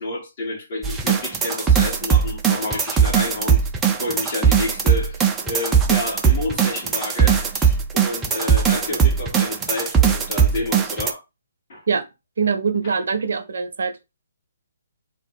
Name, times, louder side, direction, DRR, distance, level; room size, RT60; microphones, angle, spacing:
voice 1, 0.0-3.6 3.9-11.2 11.7-11.8 12.8-12.9, left 2 dB, 45° left, 2.0 m, -30 dB
sound 1, 0.8-11.1, right 7 dB, 10° right, 0.5 m, -19 dB
voice 2, 12.4-13.9, right 5 dB, 60° right, 0.7 m, -23 dB
3.8 x 2.3 x 4.4 m
figure-of-eight pair, 135°, 0 cm